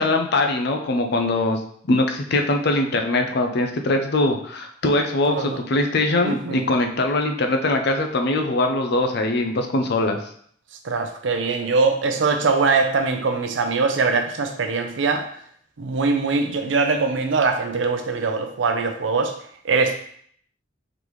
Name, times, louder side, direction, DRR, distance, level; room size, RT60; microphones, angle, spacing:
voice 1, 0.0-1.6 1.9-10.2, left 2 dB, 60° left, 5 dB, 0.5 m, -22 dB
voice 2, 5.3-5.6 6.2-6.6 10.8-15.2 15.8-19.3 19.6-19.9, right 4 dB, 85° right, 6 dB, 0.5 m, -22 dB
4.0 x 3.4 x 3.0 m, 0.62 s
head